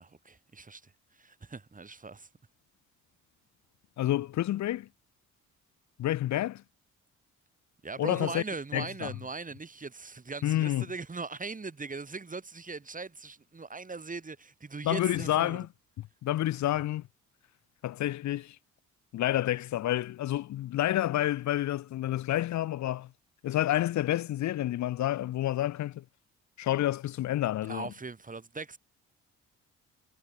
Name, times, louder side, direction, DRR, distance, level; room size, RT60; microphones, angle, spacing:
voice 1, 0.0-2.3 7.8-15.7 27.7-28.8, right 4 dB, 25° right, 6.2 m, -40 dB
voice 2, 4.0-4.9 6.0-6.6 8.0-8.4 8.7-9.1 10.4-10.8 14.8-15.7 16.2-17.0 17.8-18.6 19.1-23.1 23.4-26.0 26.6-27.9, left 13 dB, 70° left, 0.8 m, -29 dB
cardioid pair, 90°, 30 cm